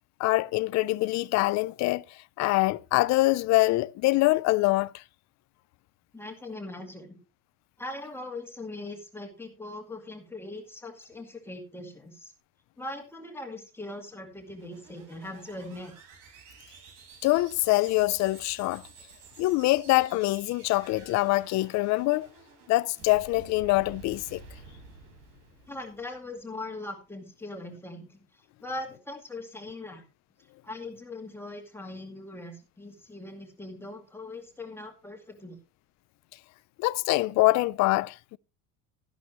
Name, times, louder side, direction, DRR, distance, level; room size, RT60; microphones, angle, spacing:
voice 1, 0.2-2.0 2.4-5.0 17.2-18.8 19.4-22.3 22.7-24.4 36.8-38.4, left 20 dB, 55° left, 0.5 m, -24 dB
voice 2, 6.1-7.2 7.8-12.3 12.8-15.9 25.7-30.1 30.6-35.6, left 2 dB, 5° left, 2.3 m, -40 dB
sound 1, 14.3-26.6, right 4 dB, 65° right, 4.5 m, -51 dB
13.0 x 11.5 x 3.0 m
cardioid pair, 160°, 33 cm